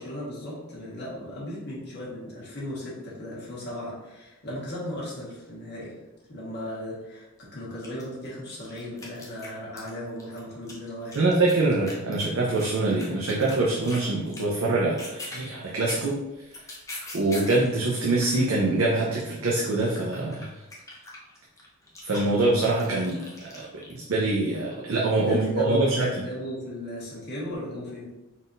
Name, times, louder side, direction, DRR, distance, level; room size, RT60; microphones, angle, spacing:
voice 1, 0.0-5.9 6.3-11.3 23.4-24.1 25.1-28.1, left 1 dB, 50° left, -7 dB, 1.5 m, -36 dB
sound 1, 7.4-7.5 7.8-9.9 10.2-14.1 14.3-14.6 14.8-17.7 18.0-23.9, left 2 dB, 15° left, 0.7 m, -41 dB
voice 2, 11.1-16.1 17.1-20.5 22.0-23.6 23.9-26.1, right 2 dB, 60° right, -4 dB, 0.6 m, -24 dB
4.1 x 3.9 x 2.6 m, 1.0 s
head